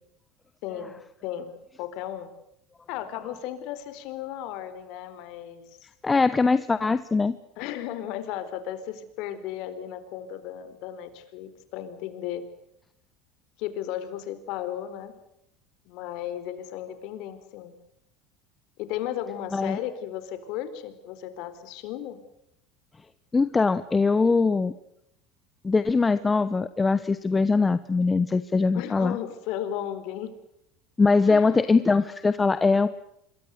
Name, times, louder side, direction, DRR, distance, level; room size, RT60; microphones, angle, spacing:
voice 1, 0.6-1.5 1.8-2.3 2.9-5.9 7.6-12.5 13.6-15.1 15.9-17.8 18.8-22.2 28.7-30.3 31.3-31.8, left 11 dB, 65° left, 11 dB, 4.3 m, -35 dB
voice 2, 6.0-7.4 19.5-19.8 23.3-24.7 25.6-29.2 31.0-32.9, left 4 dB, 15° left, 13 dB, 1.0 m, -22 dB
26.5 x 23.0 x 6.7 m, 0.78 s
supercardioid pair, 130°, 0 cm